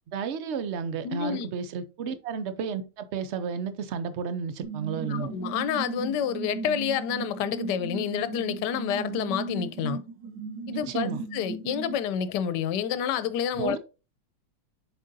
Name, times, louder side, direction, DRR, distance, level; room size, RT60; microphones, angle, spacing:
voice 1, 0.1-5.3 10.7-11.3 13.6-13.8, right 6 dB, 70° right, 0.6 m, -32 dB
voice 2, 1.0-1.5 5.1-10.0 10.7-13.8, left 8 dB, 80° left, 1.2 m, -29 dB
sound 1, 4.6-12.0, right 4 dB, 85° right, 1.4 m, -36 dB
7.4 x 5.0 x 2.6 m
omnidirectional pair, 1.9 m